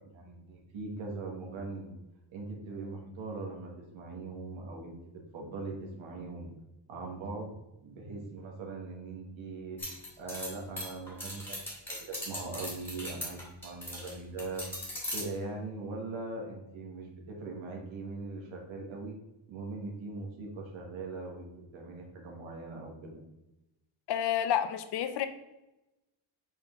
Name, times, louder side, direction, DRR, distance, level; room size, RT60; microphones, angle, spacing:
voice 1, 0.1-1.9 2.3-6.5 6.9-7.6 7.8-9.8 10.2-14.6 15.1-19.2 19.5-23.1, right 3 dB, 80° right, 0 dB, 1.6 m, -41 dB
sound 1, 9.8-14.1 14.4-15.2, left 1 dB, 5° left, 1.6 m, -39 dB
voice 2, 24.1-25.3, left 10 dB, 60° left, 10 dB, 0.6 m, -29 dB
5.1 x 5.0 x 3.7 m, 0.95 s
cardioid pair, 170°, 47 cm